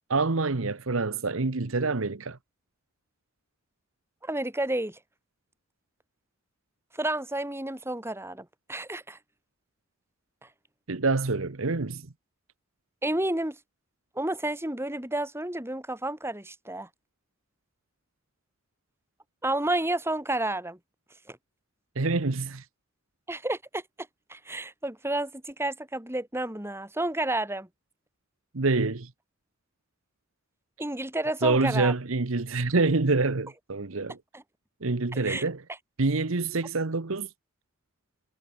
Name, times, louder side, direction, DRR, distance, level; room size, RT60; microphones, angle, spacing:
voice 1, 0.1-2.4 10.9-12.1 21.9-22.6 28.5-29.1 31.4-34.2 34.8-35.6 36.0-37.3, right 3 dB, 70° right, 1.1 m, -26 dB
voice 2, 4.2-5.0 6.9-9.2 13.0-13.6 14.1-16.9 19.4-20.8 21.3-21.4 23.3-23.8 24.3-27.7 30.8-31.9 34.3-34.4 35.1-35.4, right 1 dB, 10° right, 2.8 m, -30 dB
head